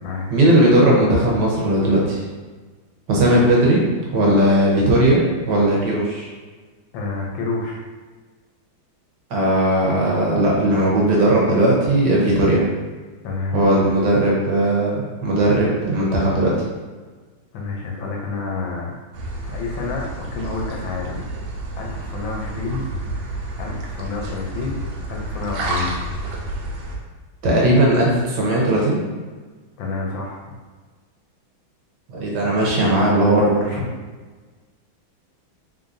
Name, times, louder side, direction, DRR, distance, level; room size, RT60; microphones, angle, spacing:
voice 1, 0.3-2.2 3.1-3.8 4.1-5.2 5.5-6.3 9.3-12.6 13.5-16.5 27.4-29.0 32.1-33.6, right 1 dB, 65° right, -3 dB, 1.4 m, -17 dB
voice 2, 6.9-7.8 13.2-13.9 17.5-18.9 19.4-21.3 21.8-22.9 23.6-24.8 25.1-25.9 29.8-30.4 33.7-33.9, left 3 dB, 75° left, -1 dB, 1.4 m, -28 dB
sound 1, 19.1-27.0, right 1 dB, 80° right, 1.5 m, -30 dB
3.8 x 3.6 x 2.6 m, 1.4 s
omnidirectional pair, 2.1 m